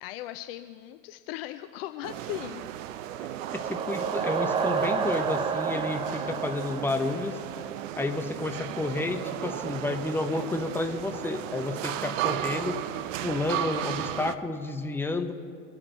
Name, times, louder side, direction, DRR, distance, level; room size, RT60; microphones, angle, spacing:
voice 1, 0.0-2.6, left 14 dB, 40° left, 10 dB, 0.6 m, -38 dB
sound 1, 2.0-14.4, right 12 dB, 55° right, 0.7 m, -35 dB
sound 2, 3.1-8.0, right 6 dB, 10° right, 0.4 m, -30 dB
voice 2, 3.5-7.4 8.0-12.7 13.2-15.3, left 2 dB, 5° left, 6 dB, 0.8 m, -31 dB
24.0 x 8.7 x 4.4 m, 2.3 s
figure-of-eight pair, 90°, 47 cm